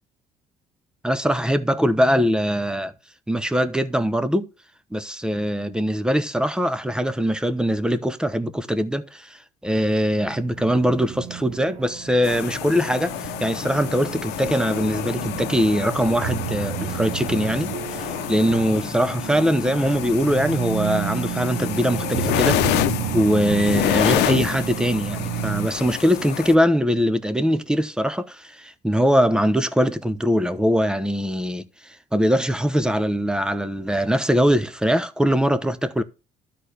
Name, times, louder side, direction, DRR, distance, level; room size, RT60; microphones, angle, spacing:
voice 1, 1.0-2.9 3.3-4.5 4.9-22.8 23.1-36.0, equal, 5° right, 0.9 m, -22 dB
sound 1, 10.0-25.7, right 12 dB, 80° right, 0.8 m, -32 dB
sound 2, 12.2-26.5, left 15 dB, 85° left, 0.8 m, -28 dB
12.5 x 4.3 x 6.6 m
cardioid pair, 110°, 17 cm